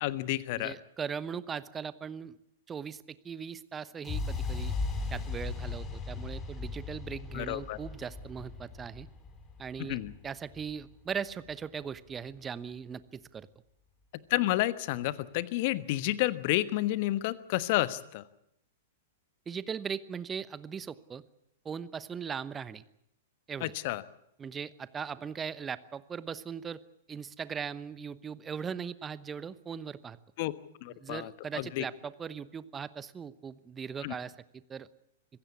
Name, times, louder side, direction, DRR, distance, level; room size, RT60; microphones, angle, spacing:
voice 1, 0.0-0.7 7.3-7.8 9.8-10.1 14.1-18.2 23.6-24.0 30.4-30.5 30.8-31.3 31.6-31.9 34.0-34.1, left 17 dB, 50° left, 14 dB, 1.2 m, -30 dB
voice 2, 0.6-2.4 2.7-4.7 5.1-9.1 9.6-13.5 19.5-21.2 21.6-22.8 23.5-23.7 24.4-26.8 27.1-30.2 31.0-34.9, right 7 dB, 20° right, 16 dB, 1.0 m, -39 dB
sound 1, 4.0-12.0, left 4 dB, 25° left, 3.8 m, -38 dB
25.5 x 16.0 x 8.4 m, 0.80 s
figure-of-eight pair, 105°, 0 cm